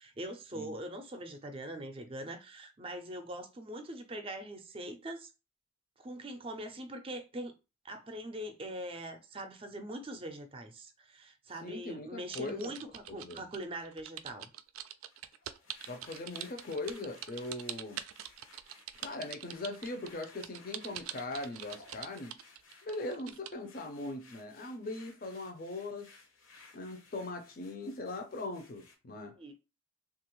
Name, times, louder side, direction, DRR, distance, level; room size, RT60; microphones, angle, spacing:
voice 1, 0.0-5.3 6.0-7.5 7.8-14.5 29.4-29.5, right 1 dB, 25° right, 0.5 m, -42 dB
voice 2, 11.6-12.7 13.1-13.4 15.9-18.0 19.0-22.4 22.8-26.1 26.7-29.3, left 2 dB, 45° left, 0.5 m, -40 dB
sound 1, 12.3-23.5, right 11 dB, 90° right, 0.3 m, -44 dB
sound 2, 15.1-29.0, left 3 dB, 70° left, 0.8 m, -59 dB
2.9 x 2.4 x 3.0 m
head